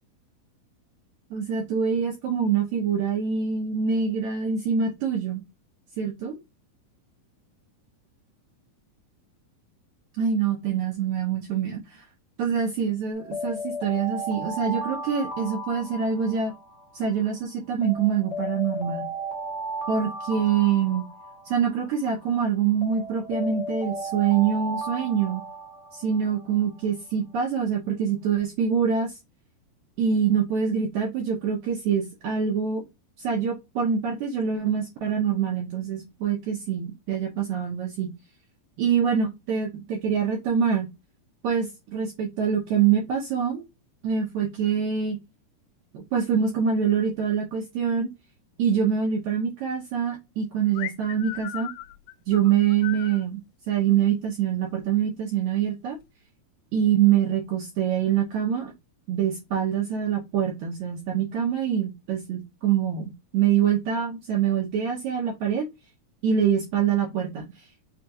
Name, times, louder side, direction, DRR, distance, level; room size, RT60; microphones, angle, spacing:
voice 1, 1.3-5.4 6.0-6.4 10.2-12.0 12.4-16.5 16.9-19.1 19.9-21.0 21.5-25.4 25.9-29.2 30.0-32.8 33.2-38.1 38.8-40.9 41.4-43.6 44.0-45.2 45.9-48.1 48.6-51.7 52.3-53.4 53.7-56.0 56.7-58.7 59.1-65.7 66.2-67.7, right 7 dB, 75° right, 0 dB, 1.8 m, -25 dB
Alarm, 13.1-17.3 17.8-22.3 22.8-26.6, right 1 dB, 40° left, 0.9 m, -35 dB
sound 1, 50.7-53.2, left 14 dB, 85° left, 2.3 m, -37 dB
5.6 x 2.4 x 2.7 m, 0.22 s
omnidirectional pair, 4.2 m